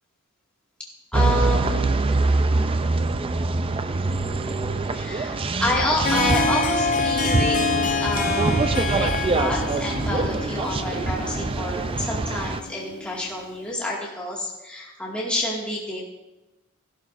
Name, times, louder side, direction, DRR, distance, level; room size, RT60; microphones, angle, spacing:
voice 1, 1.1-1.9 4.9-7.6 8.0-8.5 8.9-16.1, left 1 dB, 5° left, -5 dB, 2.0 m, -28 dB
sound 1, 1.1-12.6, right 3 dB, 25° right, 0.4 m, -24 dB
Harp, 5.7-13.5, left 3 dB, 35° left, 0.8 m, -27 dB
16.5 x 11.5 x 2.6 m, 1.0 s
head